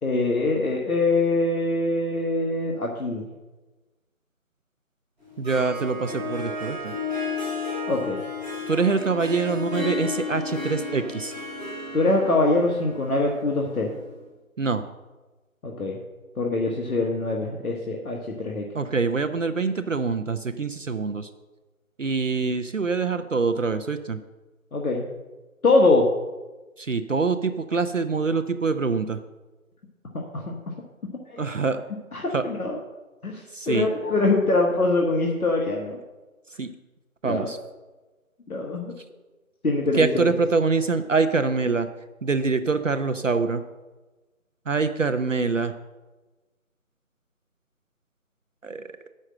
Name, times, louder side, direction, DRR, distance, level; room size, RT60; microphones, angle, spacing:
voice 1, 0.0-3.3 7.9-8.2 11.9-13.9 15.6-16.0 16.4-18.7 24.7-25.1 25.6-26.1 30.1-30.5 31.3-31.5 32.1-32.8 33.2-36.0 37.2-37.5 38.5-38.9 39.6-40.2, left 2 dB, 85° left, 0 dB, 1.5 m, -23 dB
Harp, 5.2-14.2, left 3 dB, 5° left, 3.5 m, -33 dB
voice 2, 5.4-6.9 8.7-11.3 14.6-14.9 18.7-21.3 22.0-24.2 26.8-29.2 31.4-31.8 32.3-32.4 33.5-33.9 36.6-36.7 37.2-37.6 40.0-41.9 42.2-43.6 44.7-45.7 48.6-48.9, right 4 dB, 60° right, 9 dB, 0.6 m, -25 dB
7.5 x 6.4 x 7.6 m, 1.2 s
figure-of-eight pair, 180°, 42 cm